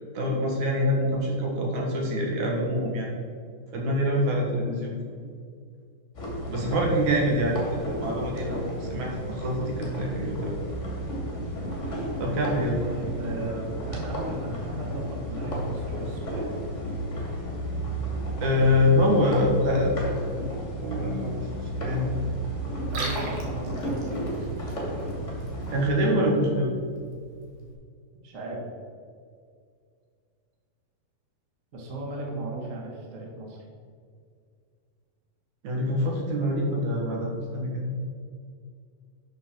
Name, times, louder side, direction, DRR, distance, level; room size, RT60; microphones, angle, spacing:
voice 1, 0.1-3.1 3.7-5.0 6.5-10.6 12.2-12.8 18.4-20.2 20.8-22.1 25.7-26.7 35.6-37.9, left 1 dB, 60° right, -1 dB, 2.7 m, -25 dB
sound 1, 6.1-25.9, right 1 dB, 25° left, 2.1 m, -33 dB
voice 2, 12.8-16.7 22.9-25.0 28.2-28.6 31.7-33.6, right 1 dB, 35° right, -1 dB, 1.3 m, -37 dB
Liquid, 22.7-27.7, right 3 dB, 75° right, 3.7 m, -41 dB
12.0 x 6.9 x 4.6 m, 2.2 s
omnidirectional pair, 4.2 m